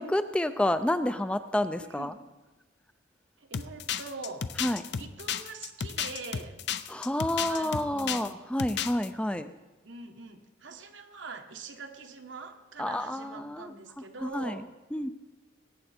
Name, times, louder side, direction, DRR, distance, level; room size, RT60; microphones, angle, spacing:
voice 1, 0.0-2.1 4.6-4.8 6.9-9.5 12.8-13.7 14.2-14.6 14.9-15.1, left 1 dB, 5° left, 11 dB, 0.4 m, -29 dB
voice 2, 1.8-2.2 3.4-4.5 4.9-6.6 7.5-8.3 9.8-14.7, right 4 dB, 85° right, 5 dB, 1.3 m, -43 dB
sound 1, 3.5-8.3 8.6-9.1, left 8 dB, 65° left, 0.5 m, -33 dB
21.0 x 9.1 x 4.3 m, 1.1 s
head